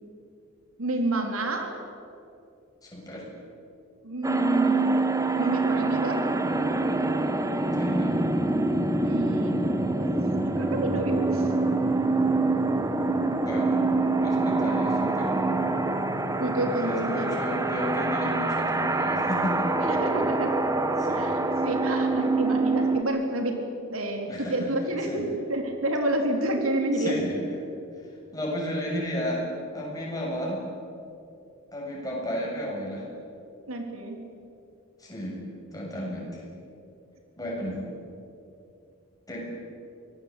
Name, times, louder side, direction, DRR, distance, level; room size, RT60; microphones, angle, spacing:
voice 1, 0.8-1.7 4.0-5.0 5.4-6.3 9.0-10.1 10.5-11.5 16.4-17.3 19.8-20.6 21.1-27.2 33.7-34.2, right 1 dB, 85° right, 4 dB, 3.7 m, -29 dB
voice 2, 2.8-3.2 7.6-8.2 12.9-13.0 13.4-13.9 14.2-15.3 16.8-19.7 21.0-21.2 24.3-24.7 25.1-25.3 27.0-27.3 28.3-29.4 29.7-30.6 31.7-33.1 35.0-35.4 35.7-36.3 37.4-37.8 39.3-39.4, equal, 15° left, -3 dB, 7.0 m, -32 dB
sound 1, 4.2-23.0, right 2 dB, 15° right, 1.2 m, -25 dB
25.0 x 19.0 x 8.5 m, 2.6 s
head